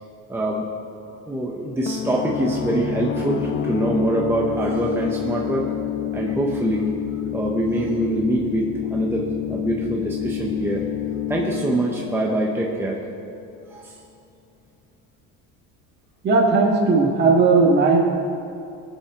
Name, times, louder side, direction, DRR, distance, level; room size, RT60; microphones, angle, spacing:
voice 1, 0.3-0.6 1.3-5.7 6.1-6.9 7.3-10.8 11.3-13.0 13.7-13.9, right 1 dB, 5° right, -2 dB, 1.1 m, -24 dB
sound 1, 1.9-13.4, left 10 dB, 35° left, 0.6 m, -28 dB
voice 2, 16.2-18.0, right 4 dB, 35° right, -4 dB, 2.0 m, -16 dB
21.0 x 7.4 x 3.9 m, 2.6 s
cardioid pair, 130°, 32 cm